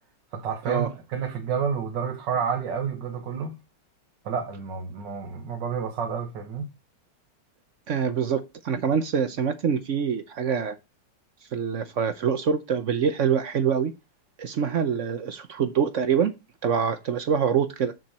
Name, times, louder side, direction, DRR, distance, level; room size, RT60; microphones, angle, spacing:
voice 1, 0.3-3.6 4.3-6.7, right 6 dB, 75° right, 1.8 m, -30 dB
voice 2, 7.9-10.8 11.5-13.9 14.4-16.3 16.6-17.9, right 7 dB, 55° right, 0.8 m, -25 dB
6.7 x 6.4 x 4.2 m
omnidirectional pair, 2.0 m